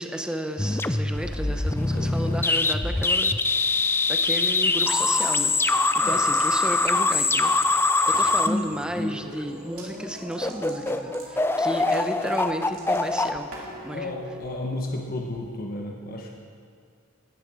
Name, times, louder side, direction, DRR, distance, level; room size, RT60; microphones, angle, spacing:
voice 1, 0.0-3.3 4.1-5.6 5.9-13.5 13.8-14.1, equal, 5° right, 5 dB, 0.8 m, -33 dB
sound 1, 0.6-9.4 10.0-10.1 10.4-14.3, left 3 dB, 10° left, 0.4 m, -23 dB
voice 2, 1.9-2.2 6.0-6.2 13.9-16.3, left 2 dB, 45° left, 1 dB, 1.1 m, -33 dB
sound 2, 5.1-5.4 5.8-7.7 8.0-8.4 9.7-9.9 10.1-13.9, right 3 dB, 75° right, 2.9 m, -46 dB
sound 3, 8.6-15.1, right 1 dB, 40° right, 3.7 m, -44 dB
18.0 x 10.5 x 4.9 m, 2.2 s
head